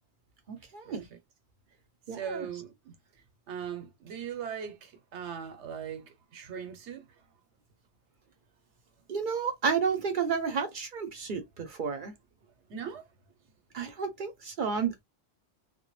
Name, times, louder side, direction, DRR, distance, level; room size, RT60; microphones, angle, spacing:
voice 1, 0.5-1.1 2.1-2.5 9.1-12.1 13.7-15.0, right 6 dB, 55° right, 0.7 m, -31 dB
voice 2, 2.1-2.9 3.5-7.1 12.7-13.0, right 7 dB, 85° right, 1.0 m, -39 dB
2.2 x 2.1 x 3.0 m
omnidirectional pair, 1.2 m